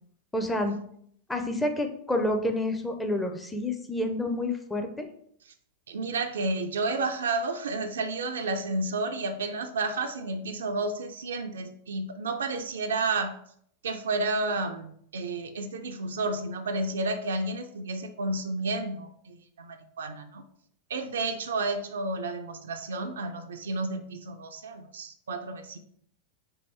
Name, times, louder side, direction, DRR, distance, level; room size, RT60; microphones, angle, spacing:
voice 1, 0.3-0.8 1.3-5.1, left 1 dB, 10° left, 4 dB, 0.5 m, -29 dB
voice 2, 5.9-13.3 13.8-20.4 20.9-25.8, right 3 dB, 65° right, 7 dB, 0.4 m, -31 dB
2.9 x 2.7 x 4.4 m, 0.66 s
figure-of-eight pair, 90°, 0 cm